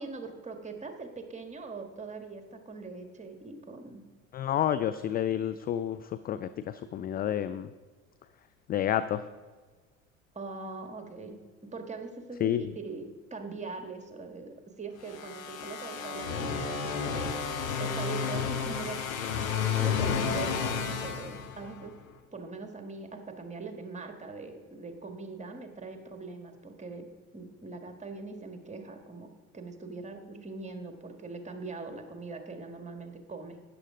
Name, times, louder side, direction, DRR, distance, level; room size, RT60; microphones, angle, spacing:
voice 1, 0.0-4.1 10.3-17.3 17.8-19.1 19.8-22.0 22.3-27.1 27.3-33.6, right 3 dB, 15° right, 6 dB, 1.8 m, -42 dB
voice 2, 4.3-6.0 6.2-7.7 8.7-9.2 12.4-12.7, left 10 dB, 25° left, 12 dB, 0.3 m, -29 dB
sound 1, 15.0-21.9, left 6 dB, 80° left, 1.3 m, -31 dB
13.0 x 9.6 x 3.7 m, 1.4 s
figure-of-eight pair, 65°, 40 cm